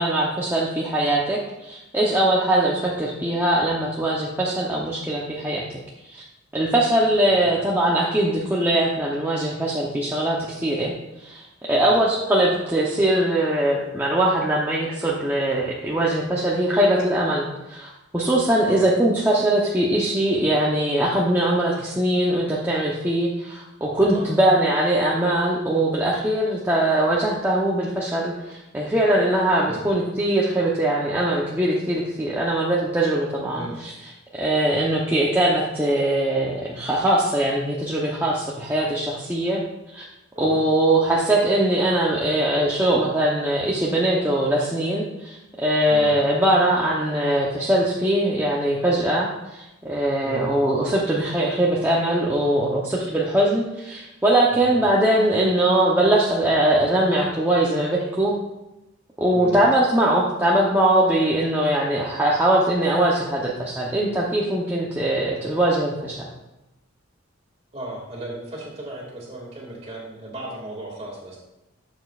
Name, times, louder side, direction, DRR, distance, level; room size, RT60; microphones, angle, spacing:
voice 1, 0.0-5.7 6.1-6.2 6.5-10.9 11.2-39.6 39.9-40.0 40.4-58.4 59.2-66.2, right 1 dB, 10° right, -5 dB, 0.8 m, -21 dB
voice 2, 11.7-12.1 18.6-18.8 24.1-24.2 29.6-29.8 33.5-33.8 40.3-40.7 45.9-46.2 50.2-50.5 54.5-54.8 59.3-59.6 67.7-71.4, right 1 dB, 30° right, -2 dB, 2.1 m, -36 dB
12.0 x 7.2 x 2.4 m, 0.95 s
head